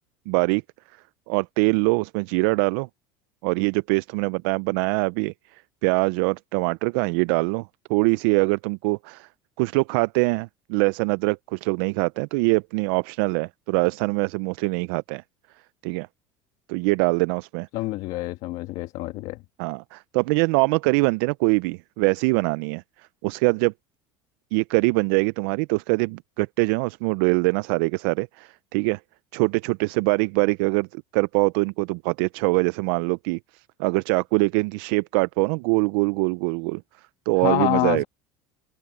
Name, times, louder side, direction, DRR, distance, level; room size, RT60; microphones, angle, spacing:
voice 1, 0.3-0.6 1.3-2.9 3.4-5.3 5.8-9.3 9.6-15.2 15.8-16.1 16.7-17.7 19.6-22.8 23.2-23.7 24.5-29.0 29.3-36.8 37.3-38.0, right 27 dB, 75° right, 0.4 m, -23 dB
voice 2, 17.7-19.4 37.4-38.0, left 19 dB, 65° left, 1.5 m, -26 dB
supercardioid pair, 95°, 12 cm